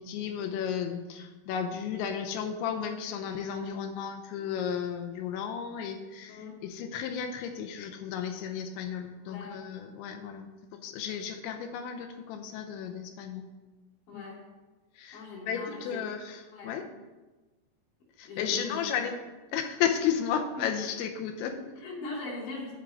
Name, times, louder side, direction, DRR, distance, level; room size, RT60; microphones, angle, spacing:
voice 1, 0.0-10.5 10.8-13.4 14.1-14.2 15.0-16.8 18.2-19.2 19.5-21.6, left 8 dB, 80° left, 5 dB, 2.8 m, -33 dB
voice 2, 9.2-9.5 14.1-14.4 15.1-16.0 16.5-16.7 18.3-19.1 20.6-20.7 21.8-22.7, left 3 dB, 65° left, -5 dB, 4.7 m, -40 dB
11.0 x 3.7 x 7.3 m, 1.2 s
omnidirectional pair, 5.7 m